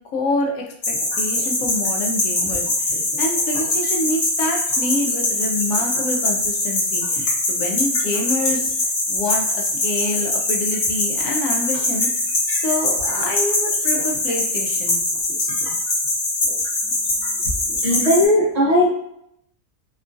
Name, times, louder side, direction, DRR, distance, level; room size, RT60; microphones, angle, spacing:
voice 1, 0.1-8.7 9.1-15.0, left 2 dB, 75° left, 1 dB, 1.0 m, -27 dB
sound 1, 0.8-18.3, left 2 dB, 50° left, 1.0 m, -22 dB
voice 2, 17.8-18.9, left 1 dB, 45° right, -7 dB, 0.5 m, -17 dB
2.9 x 2.4 x 2.5 m, 0.74 s
omnidirectional pair, 1.4 m